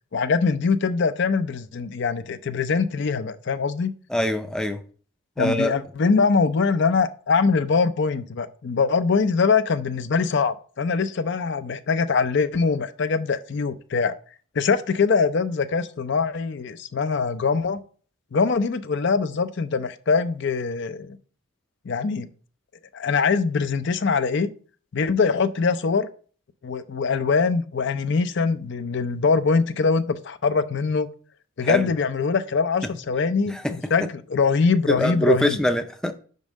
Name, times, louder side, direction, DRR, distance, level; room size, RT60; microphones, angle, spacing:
voice 1, 0.1-3.9 5.4-14.1 14.6-17.8 18.3-21.2 21.9-22.3 22.9-24.5 24.9-26.1 26.6-31.1 31.6-35.6, left 5 dB, 55° left, 0.5 m, -23 dB
voice 2, 4.1-4.8 5.4-5.8 31.6-31.9 33.5-33.9 34.9-36.1, equal, 5° left, 0.5 m, -23 dB
5.4 x 5.3 x 6.1 m
head